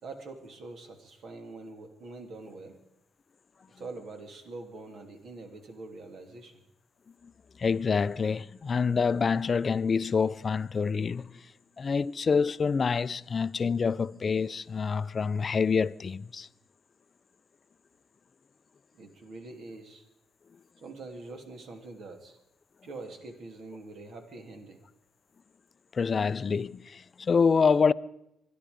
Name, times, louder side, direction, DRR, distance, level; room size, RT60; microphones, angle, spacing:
voice 1, 0.0-2.7 3.8-6.5 19.0-20.0 20.8-22.4 22.8-24.8, right 3 dB, 60° right, 2.9 m, -44 dB
voice 2, 7.6-11.4 11.8-16.5 25.9-27.9, left 5 dB, 40° left, 0.5 m, -26 dB
25.0 x 10.5 x 5.2 m
cardioid pair, 90°, 0 cm